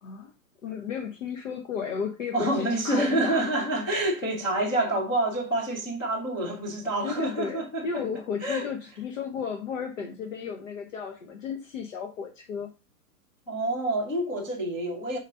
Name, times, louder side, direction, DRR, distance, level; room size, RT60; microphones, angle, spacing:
voice 1, 0.0-0.3 0.6-3.5 7.0-12.7, left 6 dB, 55° left, 1.1 m, -34 dB
voice 2, 2.3-8.0 8.4-8.7 13.5-15.2, right 1 dB, 10° left, 0.6 m, -27 dB
4.9 x 4.1 x 5.4 m
hypercardioid pair, 170°, 46 cm